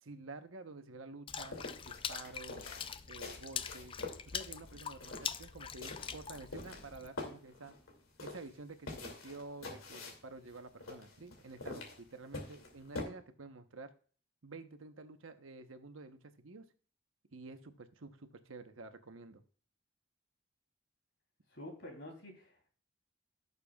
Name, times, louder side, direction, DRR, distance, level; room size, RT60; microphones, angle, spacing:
voice 1, 0.0-2.6 3.1-4.0 4.3-7.7 8.2-13.9 14.4-16.7 17.3-19.4, right 3 dB, 80° right, 8 dB, 1.0 m, -50 dB
Water / Splash splatter, 1.3-7.1, left 7 dB, 25° left, 0.3 m, -43 dB
sound 1, 1.4-13.0, left 2 dB, 85° left, 2.5 m, -46 dB
voice 2, 21.5-22.7, left 1 dB, 55° left, 2 dB, 3.2 m, -49 dB
17.0 x 6.8 x 2.4 m, 0.43 s
head